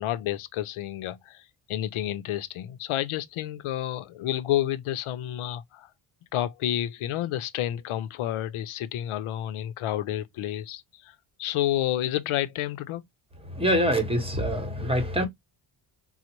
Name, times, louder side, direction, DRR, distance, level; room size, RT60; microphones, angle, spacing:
voice 1, 0.0-5.9 6.3-13.0, left 12 dB, 80° left, 0.7 m, -30 dB
voice 2, 13.5-15.3, equal, 10° right, 1.0 m, -25 dB
3.9 x 2.1 x 2.9 m
cardioid pair, 120°, 49 cm